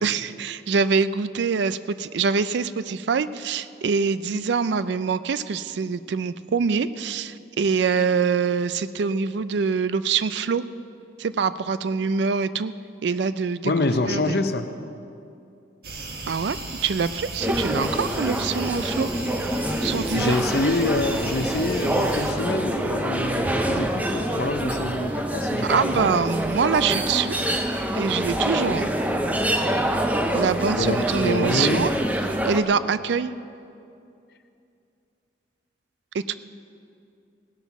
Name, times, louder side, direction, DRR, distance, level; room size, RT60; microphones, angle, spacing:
voice 1, 0.0-10.6 11.2-12.7 13.0-13.7 14.1-14.4 16.3-16.6 16.8-19.1 19.8-20.4 25.6-27.4 27.9-28.9 30.3-31.9 32.4-33.3 36.1-36.3, right 5 dB, 70° right, 15 dB, 0.4 m, -24 dB
voice 2, 13.6-14.7 20.1-26.1 30.7-31.9, left 2 dB, 55° left, 8 dB, 0.7 m, -26 dB
sound 1, 15.8-22.3, right 2 dB, 55° right, 1.3 m, -36 dB
sound 2, 17.4-32.6, right 1 dB, 10° right, 0.6 m, -26 dB
17.5 x 8.3 x 5.9 m, 2.6 s
head